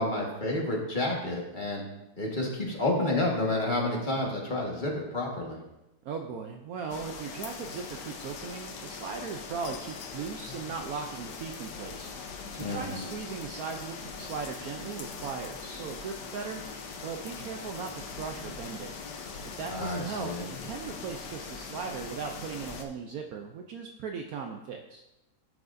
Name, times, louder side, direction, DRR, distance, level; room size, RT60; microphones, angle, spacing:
voice 1, 0.0-1.8 2.2-5.6 12.6-13.0 19.7-20.4, left 2 dB, 30° left, -2 dB, 1.6 m, -30 dB
voice 2, 6.0-12.1 12.5-18.9 19.6-25.0, right 5 dB, 70° right, 3 dB, 1.0 m, -38 dB
sound 1, 6.9-22.8, left 5 dB, 85° left, 1.5 m, -41 dB
12.0 x 6.1 x 2.6 m, 0.94 s
omnidirectional pair, 1.8 m